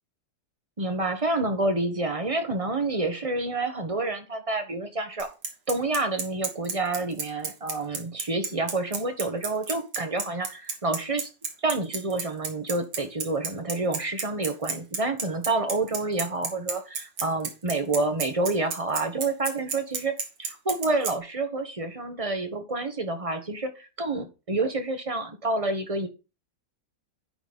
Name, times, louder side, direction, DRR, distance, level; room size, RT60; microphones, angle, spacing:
voice 1, 0.8-5.3 5.7-11.3 11.6-20.1 20.4-26.1, right 2 dB, 25° right, 7 dB, 0.9 m, -28 dB
Bicycle, 5.2-21.1, right 5 dB, 80° right, 2.2 m, -31 dB
10.5 x 4.0 x 5.1 m, 0.29 s
omnidirectional pair, 1.9 m